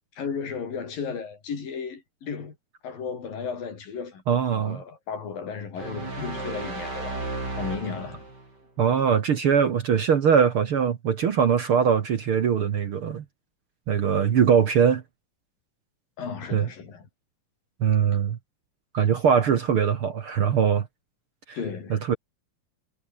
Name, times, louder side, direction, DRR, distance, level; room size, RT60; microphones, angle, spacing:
voice 1, 0.2-2.6 2.8-4.2 4.5-7.2 7.5-8.2 16.2-17.1 18.1-18.2 21.5-22.0, left 6 dB, 85° left, 6.1 m, -34 dB
voice 2, 4.3-4.8 8.8-13.2 13.9-15.0 16.5-16.7 17.8-18.4 18.9-20.9 21.5-21.6 21.9-22.2, right 7 dB, 55° right, 1.7 m, -22 dB
sound 1, 5.8-8.5, right 2 dB, 30° right, 7.2 m, -34 dB
omnidirectional pair, 3.9 m